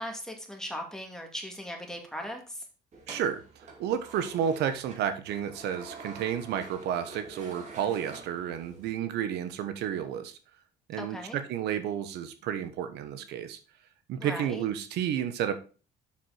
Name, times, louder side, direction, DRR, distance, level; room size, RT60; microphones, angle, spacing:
voice 1, 0.0-2.6 11.0-11.4 14.2-14.7, equal, 5° left, 2 dB, 2.5 m, -38 dB
sound 1, 2.9-8.9, right 3 dB, 45° right, 2.9 m, -47 dB
voice 2, 3.1-10.3 10.9-13.6 14.1-15.5, right 9 dB, 80° right, 10 dB, 1.1 m, -31 dB
7.4 x 6.6 x 4.3 m, 0.35 s
cardioid pair, 110°, 17 cm